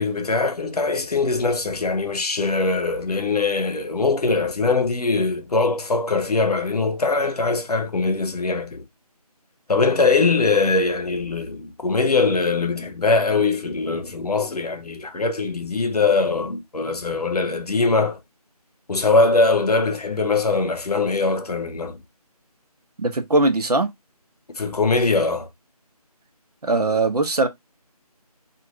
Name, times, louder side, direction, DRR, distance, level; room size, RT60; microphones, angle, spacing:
voice 1, 0.0-8.8 9.7-18.2 18.9-22.0 24.6-25.5, left 3 dB, 75° left, 0.8 m, -21 dB
voice 2, 23.0-23.9 26.6-27.5, right 2 dB, 75° right, 0.8 m, -20 dB
2.6 x 2.5 x 3.0 m
figure-of-eight pair, 175°, 20 cm